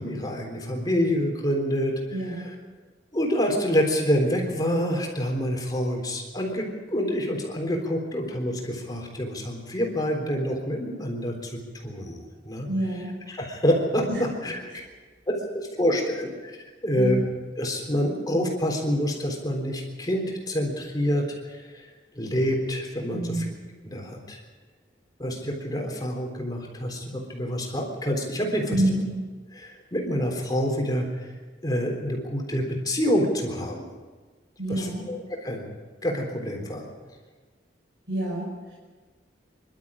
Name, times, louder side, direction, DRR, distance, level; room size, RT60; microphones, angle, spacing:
voice 1, 0.0-1.9 2.3-2.5 3.1-11.5 11.8-12.7 13.3-14.8 15.3-16.6 16.8-17.2 17.6-21.9 22.2-23.5 23.8-24.4 25.2-28.8 29.5-31.3 31.6-33.9 34.7-35.7 36.0-36.9, equal, 20° left, 1 dB, 3.6 m, -27 dB
voice 2, 2.1-2.4 12.7-13.1 14.1-14.2 17.0-17.2 23.1-23.5 28.7-29.0 34.6-35.1 38.1-38.8, right 1 dB, 60° right, -3 dB, 5.5 m, -27 dB
26.0 x 12.5 x 8.6 m, 1.4 s
head